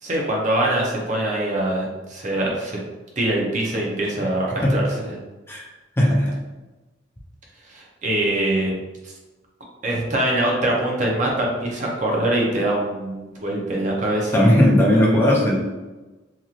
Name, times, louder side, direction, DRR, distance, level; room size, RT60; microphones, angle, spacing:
voice 1, 0.0-2.8 3.2-5.2 7.7-8.8 9.0-9.1 9.8-14.4, right 1 dB, 40° right, -2 dB, 0.6 m, -23 dB
voice 2, 6.0-6.4 14.3-15.6, left 1 dB, 15° left, -4 dB, 0.4 m, -17 dB
2.9 x 2.6 x 2.4 m, 1.1 s
head